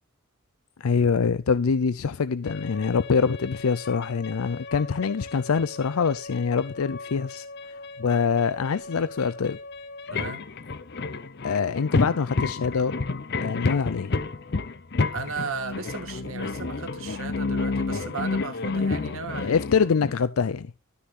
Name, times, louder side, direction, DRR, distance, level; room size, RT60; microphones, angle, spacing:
voice 1, 0.8-7.4 8.0-9.6 11.4-12.9 13.4-14.1 19.3-20.7, left 5 dB, 85° left, 0.5 m, -24 dB
sound 1, 2.4-20.3, left 3 dB, 50° left, 0.7 m, -31 dB
voice 2, 10.1-10.5 15.1-19.6, right 5 dB, 75° right, 1.5 m, -35 dB
12.5 x 6.4 x 3.7 m
head